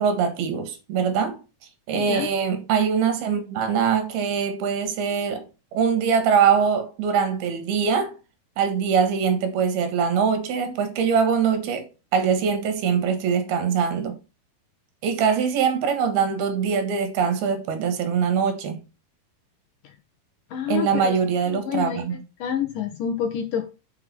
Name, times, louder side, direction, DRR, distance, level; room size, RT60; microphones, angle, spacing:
voice 1, 0.0-1.4 1.9-5.4 5.7-8.2 8.6-14.2 15.0-18.8 20.7-22.2, right 6 dB, 75° right, 3.3 m, -23 dB
voice 2, 20.5-21.2 21.5-22.0 22.4-23.7, left 8 dB, 70° left, 2.2 m, -27 dB
6.4 x 6.0 x 5.9 m
omnidirectional pair, 4.7 m